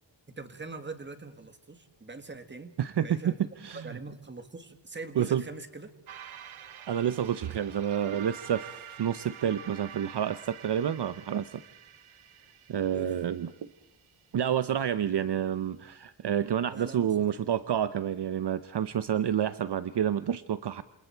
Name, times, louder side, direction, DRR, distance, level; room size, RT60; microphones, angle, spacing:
voice 1, 0.3-2.7 3.0-3.3 3.8-5.9 12.9-13.1 16.7-17.3, right 3 dB, 25° right, 9 dB, 1.8 m, -43 dB
voice 2, 2.8-3.3 3.6-4.0 5.2-5.4 6.9-11.6 12.7-13.5 14.3-20.8, right 9 dB, 55° right, 13 dB, 0.7 m, -29 dB
sound 1, 6.1-14.5, right 9 dB, 85° right, 1.3 m, -48 dB
28.0 x 27.0 x 4.6 m, 0.82 s
wide cardioid pair, 175°, 48 cm